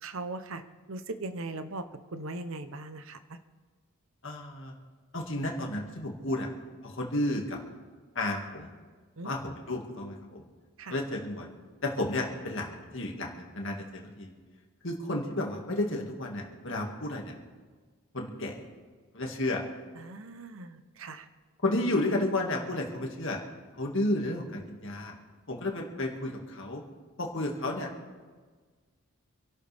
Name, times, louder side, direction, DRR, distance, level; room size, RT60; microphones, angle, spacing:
voice 1, 0.0-0.6 0.9-1.8 2.1-3.2 9.2-9.4 10.8-10.9 20.0-21.3, right 2 dB, 65° right, 10 dB, 0.9 m, -39 dB
voice 2, 4.2-4.7 5.1-6.5 6.8-7.6 8.2-8.7 9.2-10.4 10.9-11.5 11.8-14.3 14.8-17.3 18.1-18.6 19.1-19.6 21.6-23.4 23.8-25.2 25.5-26.8 27.2-27.9, left 1 dB, 55° left, 1 dB, 2.1 m, -32 dB
26.5 x 12.0 x 3.5 m, 1.5 s
head